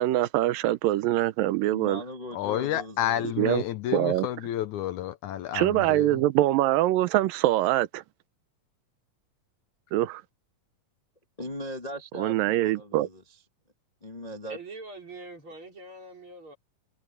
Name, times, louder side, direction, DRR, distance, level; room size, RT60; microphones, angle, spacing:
voice 1, 0.0-2.0 3.4-3.6 3.9-4.3 5.5-8.0 9.9-10.2 12.1-13.1, right 15 dB, 90° right, 2.5 m, -24 dB
voice 2, 1.7-3.2 11.4-13.2 14.0-14.6, equal, 25° left, 0.9 m, -39 dB
voice 3, 2.3-6.1, left 12 dB, 75° left, 2.0 m, -30 dB
voice 4, 14.5-16.6, right 2 dB, 40° right, 5.1 m, -43 dB
omnidirectional pair, 3.9 m